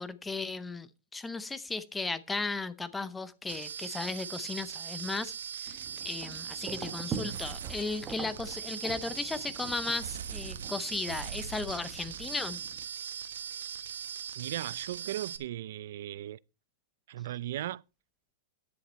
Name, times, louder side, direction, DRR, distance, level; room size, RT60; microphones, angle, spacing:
voice 1, 0.0-12.6, left 3 dB, 5° left, 0.6 m, -36 dB
sound 1, 3.5-15.4, right 8 dB, 85° right, 1.2 m, -40 dB
sound 2, 5.7-12.8, right 6 dB, 15° right, 0.9 m, -44 dB
voice 2, 14.4-16.4 17.1-17.8, right 13 dB, 55° right, 0.4 m, -37 dB
10.5 x 7.3 x 4.3 m
supercardioid pair, 170°, 0 cm